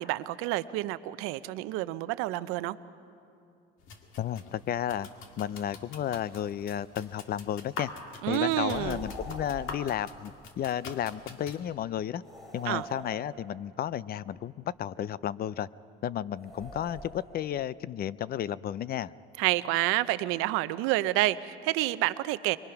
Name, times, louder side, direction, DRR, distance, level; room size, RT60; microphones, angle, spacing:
voice 1, 0.0-2.8 8.2-9.0 12.7-12.8 19.4-22.6, right 17 dB, 90° right, 14 dB, 0.6 m, -29 dB
sound 1, 3.8-11.6, left 4 dB, 70° left, 2.0 m, -45 dB
voice 2, 4.2-5.1 5.4-7.9 8.3-12.2 12.5-14.5 14.8-15.7 16.0-19.1, left 10 dB, 45° left, 19 dB, 0.5 m, -33 dB
sound 2, 8.6-10.0 12.2-13.7 16.4-17.5, right 1 dB, ahead, 3.2 m, -44 dB
24.0 x 23.5 x 5.9 m, 2.5 s
cardioid pair, 105°, 21 cm